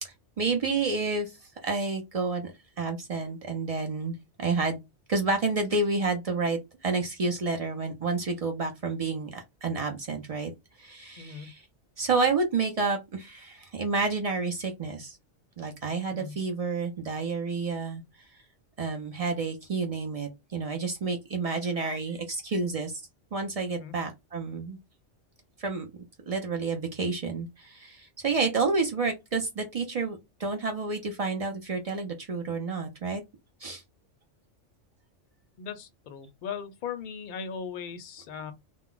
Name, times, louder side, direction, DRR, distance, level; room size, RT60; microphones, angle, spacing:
voice 1, 0.0-1.4 1.6-4.8 5.1-10.5 10.8-11.6 12.0-15.2 15.6-18.0 18.8-23.0 23.3-24.8 25.6-25.9 26.3-33.2 33.6-33.8, right 4 dB, 60° right, 0.4 m, -30 dB
voice 2, 11.2-11.5 16.1-16.4 23.7-23.9 35.6-38.5, left 7 dB, 55° left, 0.6 m, -38 dB
2.3 x 2.0 x 3.7 m
omnidirectional pair, 1.3 m